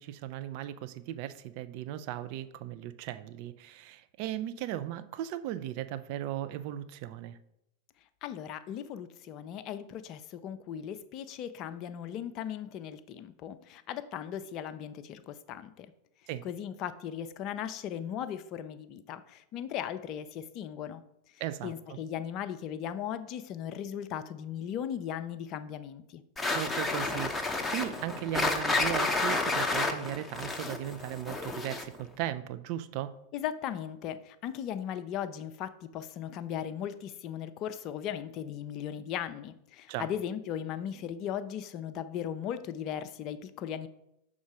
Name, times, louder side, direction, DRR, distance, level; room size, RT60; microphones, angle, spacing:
voice 1, 0.0-7.4 16.3-16.4 21.4-22.0 26.5-33.1 39.9-40.1, right 12 dB, 45° right, 12 dB, 0.5 m, -37 dB
voice 2, 8.2-15.9 16.4-21.0 21.6-26.2 33.3-43.9, left 9 dB, 35° left, 11 dB, 0.5 m, -37 dB
sound 1, 26.4-32.0, left 2 dB, 10° left, 0.8 m, -30 dB
6.2 x 3.7 x 6.1 m, 0.81 s
figure-of-eight pair, 90°, 0 cm